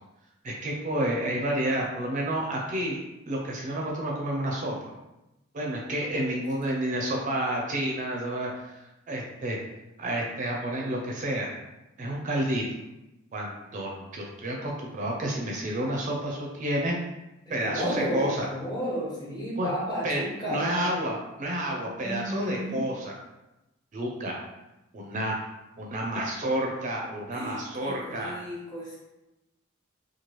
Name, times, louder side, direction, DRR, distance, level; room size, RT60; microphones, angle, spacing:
voice 1, 0.4-3.0 3.3-4.9 5.5-9.6 10.0-11.5 12.0-12.6 13.3-17.0 17.5-18.5 19.6-19.7 20.0-23.1 23.9-24.4 24.9-25.3 25.8-28.3, right 1 dB, 40° right, -1 dB, 0.4 m, -30 dB
voice 2, 17.6-20.8 22.0-22.8 27.3-29.0, equal, 20° left, -5 dB, 0.8 m, -33 dB
3.0 x 2.2 x 3.0 m, 0.97 s
head